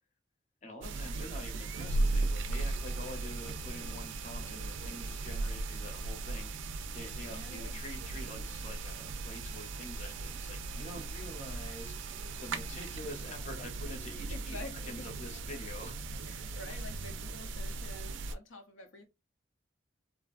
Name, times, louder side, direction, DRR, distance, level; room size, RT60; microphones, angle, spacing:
voice 1, 0.6-14.6 14.8-15.9, left 1 dB, 35° left, 0.7 m, -47 dB
sound 1, 0.8-18.3, right 2 dB, 70° right, 0.3 m, -37 dB
voice 2, 7.3-7.8 12.7-12.8 14.3-15.1 16.2-19.1, left 2 dB, 80° left, 0.6 m, -48 dB
2.6 x 2.3 x 2.4 m
head